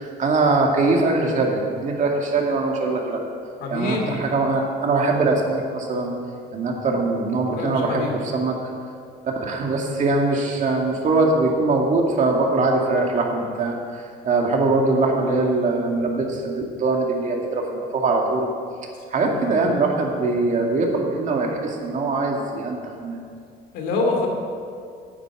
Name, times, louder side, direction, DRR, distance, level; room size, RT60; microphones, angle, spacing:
voice 1, 0.0-3.2 3.7-6.1 6.5-8.5 9.3-13.7 14.2-18.5 19.1-23.2, right 3 dB, 45° right, 0 dB, 2.2 m, -22 dB
voice 2, 3.6-4.2 7.5-8.2 19.2-19.6 23.7-24.3, left 3 dB, 85° left, 1 dB, 2.5 m, -26 dB
9.7 x 7.9 x 8.9 m, 2.3 s
cardioid pair, 110°, 17 cm